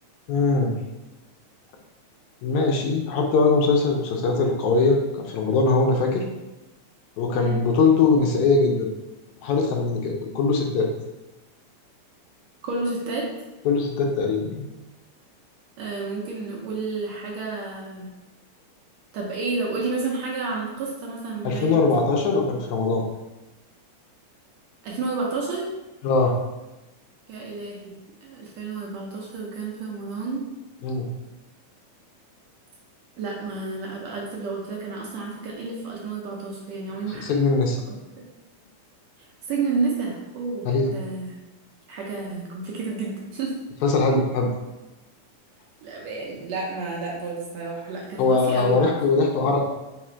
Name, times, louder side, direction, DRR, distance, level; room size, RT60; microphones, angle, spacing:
voice 1, 0.3-0.8 2.4-6.2 7.2-8.9 9.4-10.9 13.7-14.7 21.4-23.0 26.0-26.4 30.8-31.1 37.1-37.8 40.7-40.9 43.8-44.5 48.2-49.7, left 3 dB, 80° left, 1 dB, 1.9 m, -21 dB
voice 2, 12.6-13.3 15.8-18.1 19.1-21.8 24.8-25.7 27.3-27.9 28.2-30.6 33.2-37.4 39.5-41.4 41.9-43.5 45.8-48.9, right 3 dB, 75° right, -2 dB, 1.7 m, -30 dB
4.9 x 2.4 x 4.3 m, 1.0 s
omnidirectional pair, 3.5 m